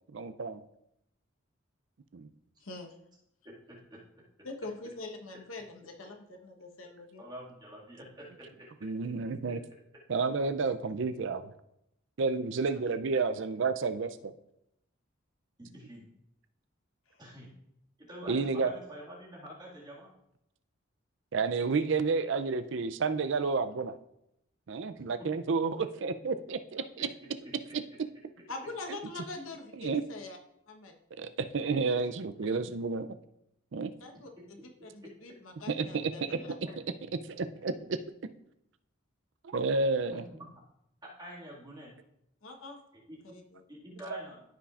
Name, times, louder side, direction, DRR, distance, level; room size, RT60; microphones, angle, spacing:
voice 1, 0.1-0.6 2.1-2.3 8.8-9.6 10.1-11.5 12.2-14.3 18.3-18.7 21.3-23.9 24.7-27.1 29.8-30.0 31.2-33.2 33.7-33.9 35.7-36.1 37.1-38.0 39.4-40.2 44.1-44.2, right 4 dB, 65° right, 10 dB, 0.5 m, -30 dB
voice 2, 2.6-2.9 4.4-6.2 6.4-7.2 28.5-30.4 30.7-30.9 33.9-36.6 42.4-42.8 43.2-43.6, left 3 dB, 85° left, 3 dB, 1.1 m, -43 dB
voice 3, 3.4-4.0 7.2-8.7 15.6-16.1 17.2-17.5 18.0-20.1 27.4-27.5 36.4-36.6 40.1-40.5 41.0-41.9 43.1-43.2 43.7-44.4, equal, 20° right, -5 dB, 2.0 m, -47 dB
14.0 x 5.8 x 2.5 m, 0.81 s
head